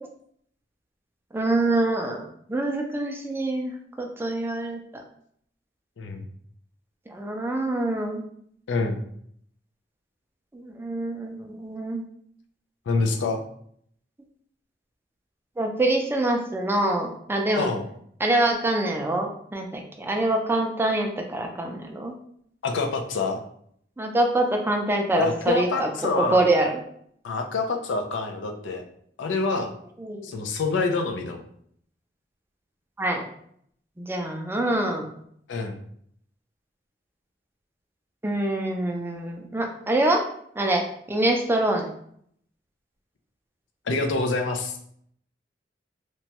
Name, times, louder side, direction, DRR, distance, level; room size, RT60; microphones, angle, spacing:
voice 1, 1.3-4.8 7.1-8.2 10.5-12.0 15.6-17.7 18.2-22.1 24.0-25.9 26.1-26.7 30.0-30.3 33.0-33.3 34.0-35.1 38.2-40.2 40.6-41.9, right 1 dB, 10° right, 2 dB, 0.3 m, -25 dB
voice 2, 8.7-9.0 12.9-13.4 17.5-17.8 22.6-23.4 25.1-26.4 27.2-28.8 29.2-29.7 30.2-31.4 35.5-35.8 43.9-44.8, left 3 dB, 90° left, 5 dB, 0.4 m, -26 dB
2.9 x 2.2 x 2.8 m, 0.66 s
head